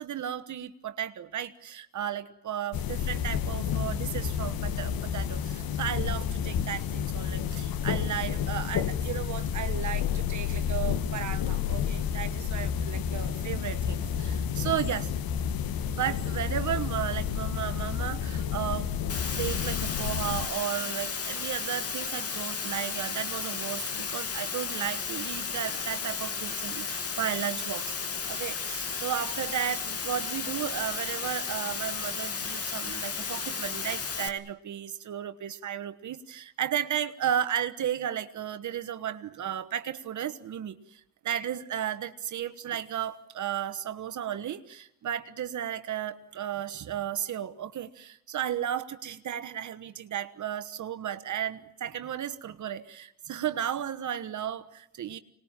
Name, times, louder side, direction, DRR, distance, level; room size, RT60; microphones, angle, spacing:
voice 1, 0.0-15.1 15.9-18.9 19.3-55.2, right 10 dB, 55° right, 10 dB, 1.3 m, -34 dB
sound 1, 2.7-20.5, left 8 dB, 75° left, 1.7 m, -30 dB
Water, 19.1-34.3, left 5 dB, 40° left, 2.5 m, -34 dB
25.5 x 20.5 x 9.0 m, 0.81 s
cardioid pair, 100°, 36 cm